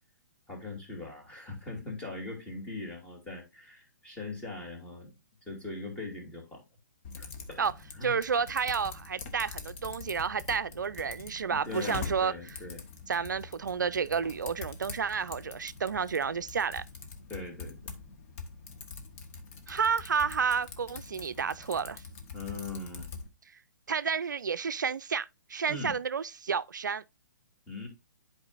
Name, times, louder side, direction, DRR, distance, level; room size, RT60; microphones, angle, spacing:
voice 1, 0.5-6.6 7.2-7.6 7.9-8.2 11.5-12.8 17.3-17.8 22.3-23.1 25.7-26.0 27.7-27.9, left 3 dB, 10° left, 2.7 m, -40 dB
Typing, 7.0-23.3, left 4 dB, 45° left, 1.3 m, -44 dB
voice 2, 8.0-12.3 13.1-16.8 19.7-22.0 23.9-27.0, right 6 dB, 80° right, 0.4 m, -30 dB
10.5 x 4.6 x 2.5 m
hypercardioid pair, 130°, 10 cm